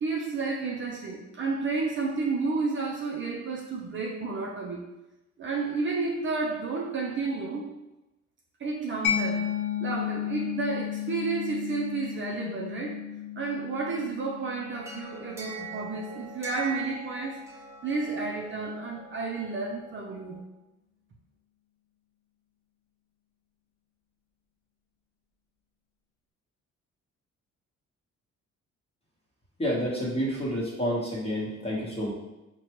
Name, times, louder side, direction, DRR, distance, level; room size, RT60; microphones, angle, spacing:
voice 1, 0.0-4.9 5.4-7.7 8.6-9.4 9.8-13.0 13.4-17.4 17.8-20.4, right 4 dB, 40° right, -1 dB, 0.5 m, -31 dB
Mallet percussion, 9.0-16.4, left 9 dB, 75° left, 0.7 m, -34 dB
sound 1, 14.7-20.4, right 5 dB, 10° right, 0.9 m, -42 dB
voice 2, 29.6-32.1, equal, 20° left, -4 dB, 1.2 m, -29 dB
4.1 x 2.2 x 3.0 m, 0.98 s
cardioid pair, 90°, 30 cm